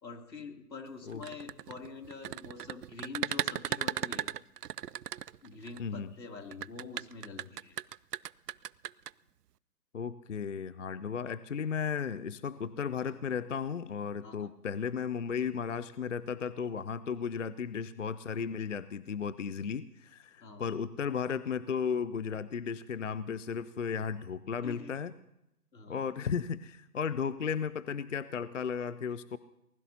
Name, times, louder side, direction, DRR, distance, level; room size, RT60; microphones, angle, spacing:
voice 1, 0.0-4.3 5.4-7.8 14.2-14.5 17.1-17.2 20.4-20.7 24.6-24.9 25.7-26.0, left 4 dB, 80° left, 3 dB, 3.0 m, -45 dB
sound 1, 1.1-5.8 6.5-9.1, right 10 dB, 70° right, 0.5 m, -36 dB
voice 2, 9.9-25.1 25.9-29.4, left 6 dB, 50° left, 16 dB, 0.5 m, -35 dB
24.0 x 20.0 x 2.8 m, 0.85 s
hypercardioid pair, 160°, 49 cm